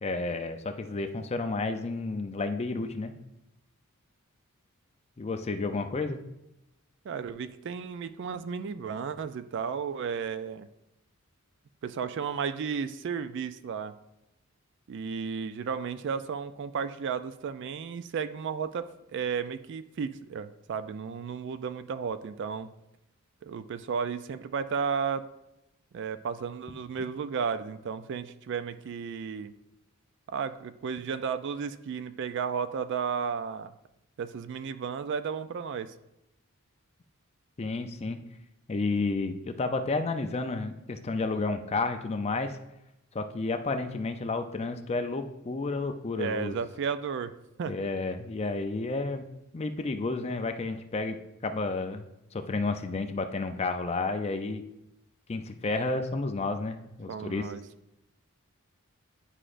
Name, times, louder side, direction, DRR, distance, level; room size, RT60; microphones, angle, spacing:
voice 1, 0.0-3.1 5.2-6.2 37.6-38.2 38.7-42.6 43.1-46.6 47.7-49.2 49.5-54.6 55.3-57.5, left 3 dB, 30° left, 7 dB, 0.4 m, -31 dB
voice 2, 7.0-10.7 11.8-13.9 14.9-22.7 23.4-25.2 25.9-29.5 30.3-33.7 34.2-35.9 46.2-47.3 47.6-47.7 57.1-57.6, right 6 dB, 55° right, 12 dB, 0.3 m, -33 dB
9.8 x 4.9 x 2.5 m, 0.88 s
head